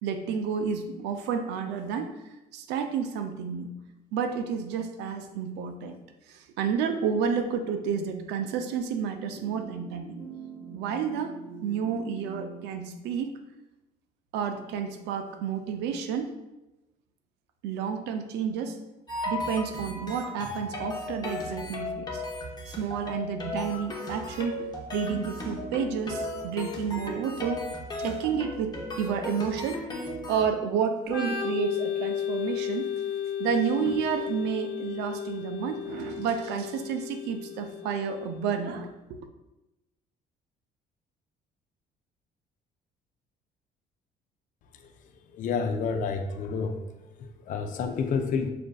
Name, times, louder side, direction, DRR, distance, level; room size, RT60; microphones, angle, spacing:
voice 1, 0.0-2.2 2.5-3.7 4.1-6.0 6.3-10.2 10.7-11.3 11.6-13.3 14.3-16.3 17.6-18.8 19.3-22.2 22.7-27.6 28.0-29.8 30.3-32.9 33.4-38.9, right 7 dB, 90° right, 7 dB, 0.5 m, -30 dB
sound 1, 9.3-12.6, right 4 dB, 35° right, 0.8 m, -43 dB
sound 2, 19.1-30.5, left 2 dB, 25° left, 0.8 m, -36 dB
Organ, 31.0-38.6, left 9 dB, 80° left, 0.9 m, -34 dB
voice 2, 45.3-46.8 47.2-48.5, left 5 dB, 50° left, 5 dB, 0.4 m, -29 dB
6.2 x 2.5 x 2.2 m, 0.98 s
cardioid pair, 110°, 17 cm